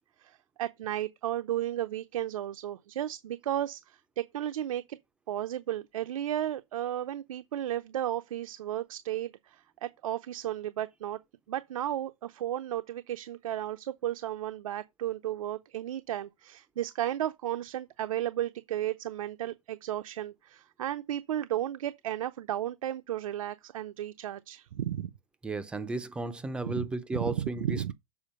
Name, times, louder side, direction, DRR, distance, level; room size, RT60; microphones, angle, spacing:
voice 1, 0.2-5.0 5.3-11.2 11.5-25.1 26.6-26.9 27.1-27.9, right 12 dB, 80° right, 0.7 m, -34 dB
voice 2, 25.4-27.9, right 2 dB, 5° right, 0.4 m, -34 dB
7.2 x 4.6 x 6.3 m
supercardioid pair, 175°, 17 cm